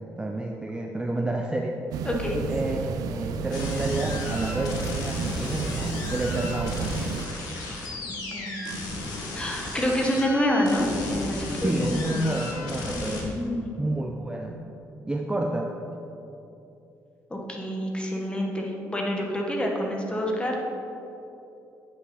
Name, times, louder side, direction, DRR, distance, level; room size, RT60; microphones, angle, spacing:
voice 1, 0.0-1.8 2.5-7.0 11.6-13.3 13.8-14.6 15.1-15.7, right 1 dB, 15° right, 1 dB, 0.5 m, -29 dB
sound 1, 1.9-7.3, right 6 dB, 80° right, 0.4 m, -32 dB
voice 2, 2.0-2.4 8.1-8.8 9.3-12.2 12.9-13.7 17.3-20.6, equal, 15° left, 0 dB, 1.2 m, -28 dB
sound 2, 3.5-13.2, left 2 dB, 85° left, 1.4 m, -34 dB
8.1 x 5.4 x 3.9 m, 2.9 s
cardioid pair, 85°, 6 cm